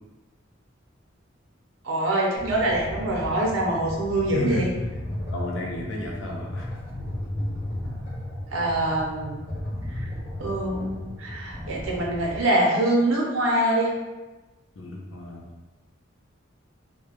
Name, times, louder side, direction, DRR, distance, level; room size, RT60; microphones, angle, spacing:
voice 1, 1.8-4.7 8.5-9.4 10.0-10.1 10.4-13.9, right 1 dB, 85° right, -2 dB, 0.6 m, -24 dB
sound 1, 2.4-12.4, left 1 dB, 30° left, 0.9 m, -34 dB
voice 2, 4.3-4.7 5.3-6.8 14.8-15.4, left 1 dB, 70° left, -2 dB, 0.6 m, -32 dB
2.2 x 2.1 x 3.0 m, 1.1 s
head